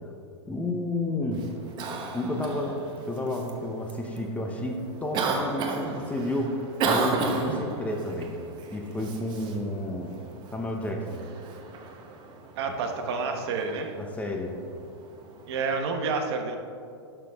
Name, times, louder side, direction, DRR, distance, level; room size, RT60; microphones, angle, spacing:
voice 1, 0.5-1.5 2.1-6.6 6.8-8.3 8.7-10.1 10.5-11.2 14.0-14.6, left 1 dB, 10° left, 2 dB, 0.7 m, -31 dB
Cough, 1.3-15.8, right 4 dB, 30° right, 1.0 m, -35 dB
voice 2, 12.6-13.9 15.5-16.6, right 4 dB, 60° right, 4 dB, 1.1 m, -29 dB
12.0 x 5.9 x 3.5 m, 2.5 s
supercardioid pair, 140°, 15 cm